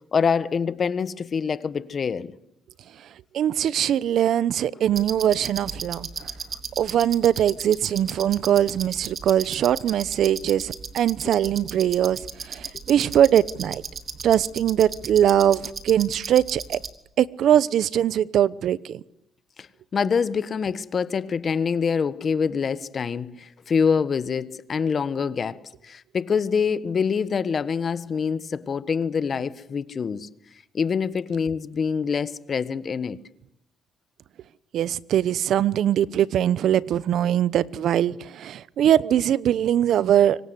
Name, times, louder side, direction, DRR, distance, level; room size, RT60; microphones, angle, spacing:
voice 1, 0.1-2.3 11.3-11.4 19.6-19.7 19.9-30.3 30.7-33.2, left 6 dB, 45° left, 1.5 m, -25 dB
voice 2, 3.3-6.1 6.8-13.8 14.2-16.8 17.2-19.0 34.7-40.4, right 10 dB, 70° right, 0.9 m, -21 dB
sound 1, 4.9-16.9, right 5 dB, 50° right, 3.1 m, -36 dB
26.0 x 24.0 x 8.3 m
cardioid pair, 90°, 0 cm